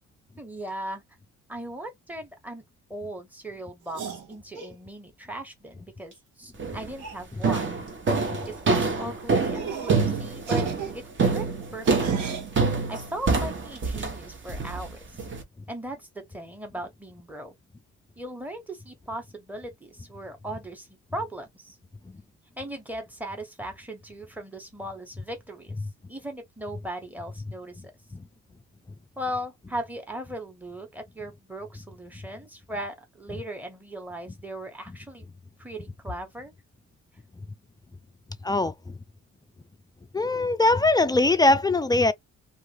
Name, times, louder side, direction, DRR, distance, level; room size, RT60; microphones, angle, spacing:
voice 1, 0.4-1.0 1.5-2.6 2.9-4.0 4.3-7.8 8.5-12.3 12.9-15.2 15.7-17.5 18.2-21.8 22.6-25.8 26.1-27.9 29.2-35.3 35.6-36.5, right 1 dB, 5° right, 1.1 m, -38 dB
sound 1, 3.9-4.7 6.1-6.2 6.4-6.5 7.0-7.2 7.9-8.1 8.4-8.6 9.0-9.1 9.5-10.1 10.4-12.5 13.3-13.9, right 7 dB, 80° right, 1.3 m, -38 dB
sound 2, 6.6-6.9 7.4-15.4, right 4 dB, 40° right, 1.0 m, -26 dB
voice 2, 40.1-42.1, left 2 dB, 15° left, 0.3 m, -21 dB
2.5 x 2.4 x 3.1 m
cardioid pair, 90°, 30 cm